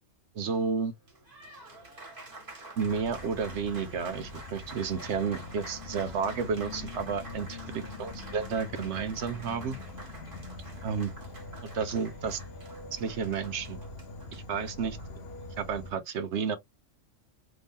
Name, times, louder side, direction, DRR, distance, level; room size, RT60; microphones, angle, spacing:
voice 1, 0.3-0.9 2.8-9.8 10.8-11.1 11.6-12.4 12.9-13.8 14.3-15.0 15.6-16.6, right 6 dB, 65° right, 1.0 m, -31 dB
Applause, 0.9-15.6, right 2 dB, 45° right, 1.7 m, -48 dB
Insect / Frog, 2.8-15.9, left 2 dB, 60° left, 1.0 m, -44 dB
3.5 x 2.7 x 3.5 m
omnidirectional pair, 1.3 m